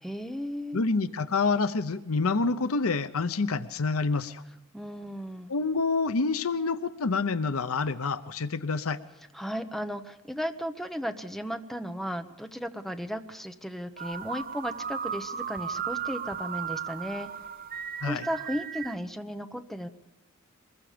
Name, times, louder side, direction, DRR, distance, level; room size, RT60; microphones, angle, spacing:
voice 1, 0.0-0.8 4.7-5.5 9.3-17.3 18.0-19.9, equal, ahead, 8 dB, 1.0 m, -35 dB
voice 2, 0.7-4.4 5.5-9.0 18.0-18.3, left 4 dB, 85° left, 12 dB, 0.8 m, -27 dB
sound 1, 14.0-19.0, right 7 dB, 45° right, 0.7 m, -35 dB
23.5 x 21.5 x 5.1 m, 0.94 s
head